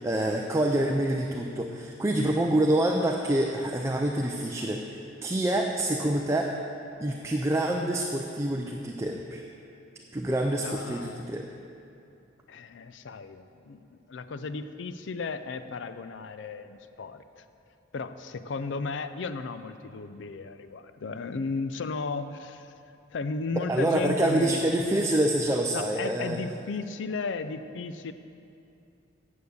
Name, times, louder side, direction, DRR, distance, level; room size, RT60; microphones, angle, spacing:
voice 1, 0.0-6.5 7.0-9.4 10.1-11.5 23.7-26.4, right 1 dB, 15° right, 1 dB, 0.4 m, -26 dB
voice 2, 10.6-11.3 12.5-17.4 17.9-22.7 23.1-24.6 25.7-28.1, left 4 dB, 65° left, 11 dB, 0.4 m, -35 dB
9.3 x 6.5 x 6.8 m, 2.6 s
head